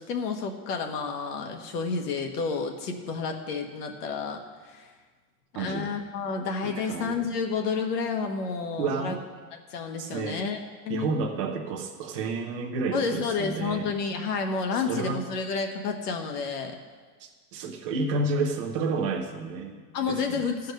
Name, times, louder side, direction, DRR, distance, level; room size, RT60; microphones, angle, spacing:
voice 1, 0.0-4.4 4.7-4.9 5.6-9.2 9.7-11.1 12.9-16.7 19.9-20.7, left 5 dB, 75° left, 3 dB, 1.4 m, -30 dB
voice 2, 5.5-5.9 6.6-7.2 8.8-9.2 10.0-10.4 10.9-13.9 14.7-15.2 17.2-20.5, right 3 dB, 20° right, 2 dB, 0.5 m, -31 dB
14.0 x 4.7 x 6.5 m, 1.4 s
supercardioid pair, 175°, 48 cm